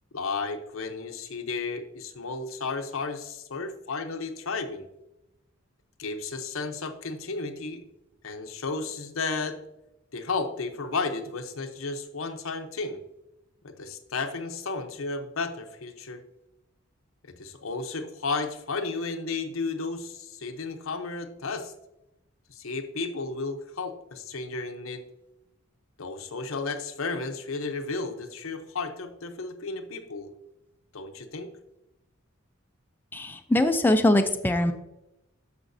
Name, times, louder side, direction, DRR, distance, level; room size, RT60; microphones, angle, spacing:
voice 1, 0.1-4.9 6.0-7.8 8.2-9.6 10.1-13.0 13.6-16.2 17.2-21.7 22.5-25.0 26.0-30.3 30.9-31.5, left 4 dB, 85° left, 6 dB, 0.8 m, -33 dB
voice 2, 33.1-34.7, left 1 dB, 10° left, 6 dB, 0.4 m, -22 dB
13.0 x 5.2 x 2.7 m, 0.91 s
head